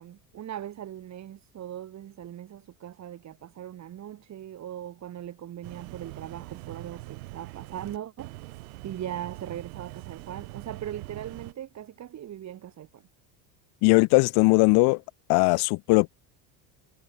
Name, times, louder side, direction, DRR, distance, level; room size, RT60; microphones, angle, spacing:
voice 1, 0.0-8.4 8.8-13.0, right 11 dB, 40° right, 2.4 m, -39 dB
sound 1, 5.6-11.5, right 22 dB, 90° right, 6.6 m, -43 dB
voice 2, 13.8-15.0 15.3-16.1, left 29 dB, 60° left, 0.7 m, -19 dB
supercardioid pair, 115°, 43 cm